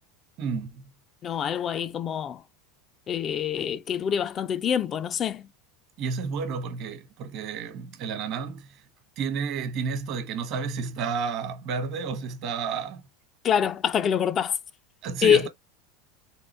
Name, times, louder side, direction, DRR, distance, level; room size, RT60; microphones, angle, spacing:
voice 1, 0.4-0.8 6.0-8.8 9.2-13.0 15.0-15.5, right 5 dB, 55° right, 1.2 m, -31 dB
voice 2, 1.2-2.4 3.1-5.5 13.4-14.6 15.2-15.5, left 8 dB, 35° left, 0.4 m, -25 dB
3.7 x 2.5 x 3.1 m
supercardioid pair, 105°, 0 cm